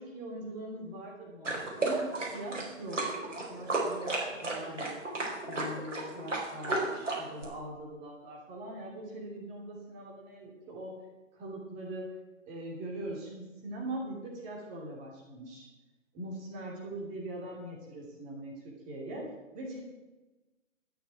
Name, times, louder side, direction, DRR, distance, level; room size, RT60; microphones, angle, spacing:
voice 1, 0.0-3.1 3.5-4.9 5.5-10.9 11.3-12.1 12.5-15.7 16.1-19.2 19.5-19.8, right 1 dB, 20° right, -1 dB, 2.8 m, -41 dB
sound 1, 1.4-7.4, right 2 dB, 65° right, 4.9 m, -33 dB
13.0 x 6.8 x 9.1 m, 1.1 s
figure-of-eight pair, 140°, 39 cm